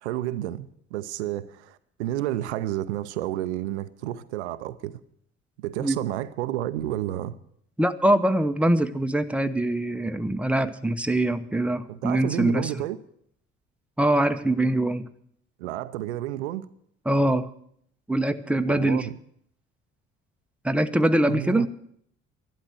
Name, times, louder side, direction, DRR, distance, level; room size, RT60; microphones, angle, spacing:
voice 1, 0.0-5.0 5.6-7.4 11.9-13.0 15.6-16.7 18.7-19.2 21.3-21.7, right 13 dB, 80° right, 0.6 m, -31 dB
voice 2, 7.8-12.7 14.0-15.1 17.1-17.5 18.1-19.1 20.6-21.7, right 1 dB, 5° right, 0.8 m, -23 dB
12.0 x 11.0 x 6.4 m
hypercardioid pair, 50°, 33 cm